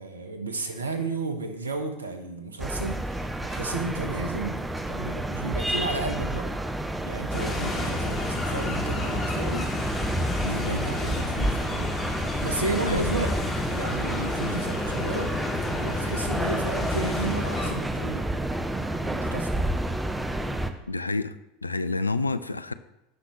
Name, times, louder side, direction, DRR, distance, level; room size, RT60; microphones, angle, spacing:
voice 1, 0.0-4.6 4.8-6.5 7.0-9.7 10.5-11.9 12.4-13.3 13.7-15.3 15.8-18.3 19.0-19.6, right 3 dB, 80° right, 6 dB, 1.0 m, -33 dB
sound 1, 2.6-20.7, right 1 dB, 10° right, 0.7 m, -30 dB
sound 2, 7.3-17.7, left 2 dB, 15° left, 2.6 m, -31 dB
voice 2, 10.4-10.8 12.8-13.3 20.9-21.4 21.6-22.7, left 2 dB, 85° left, 13 dB, 0.4 m, -29 dB
15.0 x 5.9 x 3.1 m, 0.90 s
figure-of-eight pair, 75°, 0 cm